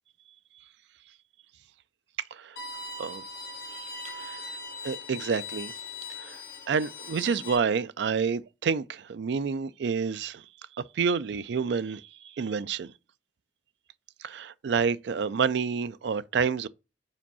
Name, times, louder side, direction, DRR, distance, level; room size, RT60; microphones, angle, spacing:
Bowed string instrument, 2.6-7.6, left 3 dB, 60° left, 1.7 m, -40 dB
voice 1, 4.0-4.4 4.8-5.7 6.2-6.4 6.7-10.4 10.9-12.0 12.4-12.9 14.2-16.7, right 5 dB, 70° right, 0.4 m, -28 dB
5.0 x 4.5 x 5.5 m
head